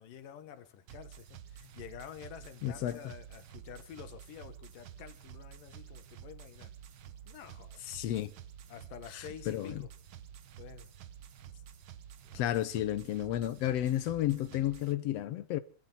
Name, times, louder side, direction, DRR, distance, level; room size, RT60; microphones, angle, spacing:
voice 1, 0.0-6.7 7.3-7.9 8.7-9.9 10.6-10.9 12.2-12.6, left 9 dB, 90° left, 3.2 m, -49 dB
sound 1, 0.9-14.9, right 9 dB, 90° right, 1.1 m, -50 dB
voice 2, 2.6-3.0 7.9-8.3 9.1-9.8 12.3-15.6, left 13 dB, 70° left, 1.6 m, -32 dB
26.5 x 13.0 x 4.1 m
omnidirectional pair, 3.7 m